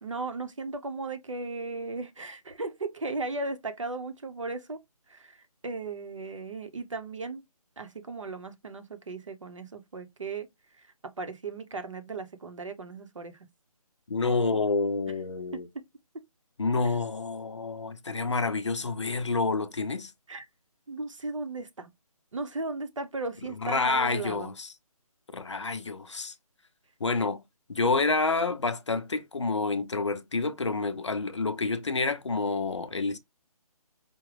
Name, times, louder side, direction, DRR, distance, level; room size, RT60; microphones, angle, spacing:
voice 1, 0.0-4.8 5.1-7.4 7.8-10.5 10.7-13.4 15.5-15.8 16.8-17.0 20.3-20.5 20.9-21.9 22.3-24.5, right 3 dB, 55° right, 0.8 m, -36 dB
voice 2, 14.1-15.7 16.6-20.1 23.6-24.7 25.3-26.3 27.0-27.4 27.7-33.2, left 3 dB, 50° left, 0.6 m, -28 dB
4.9 x 2.2 x 3.2 m
hypercardioid pair, 180°, 19 cm